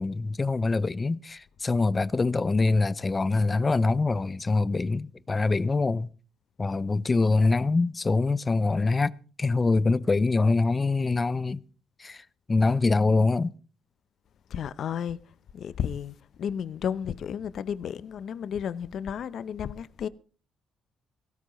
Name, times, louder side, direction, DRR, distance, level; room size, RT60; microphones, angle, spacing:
voice 1, 0.0-6.1 6.6-9.1 9.4-11.6 12.0-12.2 12.5-13.5, left 3 dB, 25° left, 0.6 m, -24 dB
voice 2, 14.5-15.2 15.5-20.1, left 8 dB, 65° left, 0.7 m, -32 dB
18.0 x 16.0 x 3.1 m
cardioid pair, 90°, 0 cm